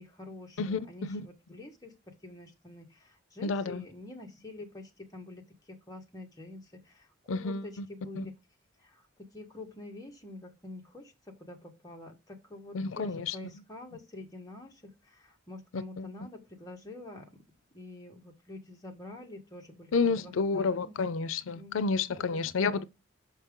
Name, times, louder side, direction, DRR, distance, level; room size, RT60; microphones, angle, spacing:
voice 1, 0.0-8.3 8.8-17.4 17.7-21.0 21.5-21.9 22.3-22.9, left 2 dB, 20° left, 1.5 m, -47 dB
voice 2, 0.6-1.3 3.4-3.8 7.3-7.9 8.2-8.3 12.7-13.4 15.7-16.1 19.9-22.8, left 4 dB, 85° left, 0.4 m, -30 dB
5.8 x 5.7 x 3.6 m
head